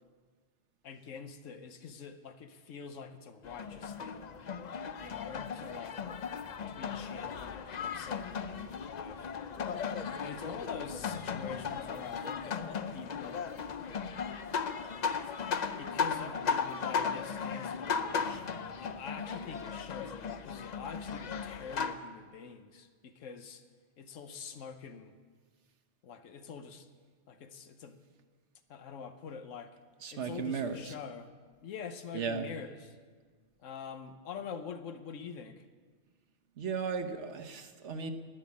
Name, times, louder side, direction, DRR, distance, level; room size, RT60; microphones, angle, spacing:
voice 1, 0.8-4.3 5.0-6.0 6.7-9.3 10.2-13.5 15.8-23.6 24.0-25.2 26.0-26.9 27.3-28.0 28.7-29.8 30.1-31.3 31.6-33.0 33.6-35.6, left 6 dB, 85° left, 9 dB, 1.2 m, -45 dB
sound 1, 3.4-21.9, left 6 dB, 50° left, 0.5 m, -36 dB
voice 2, 30.0-30.9 32.1-32.4 36.6-38.1, right 5 dB, 65° right, 7 dB, 1.2 m, -35 dB
11.0 x 10.5 x 8.4 m, 1.5 s
omnidirectional pair, 1.3 m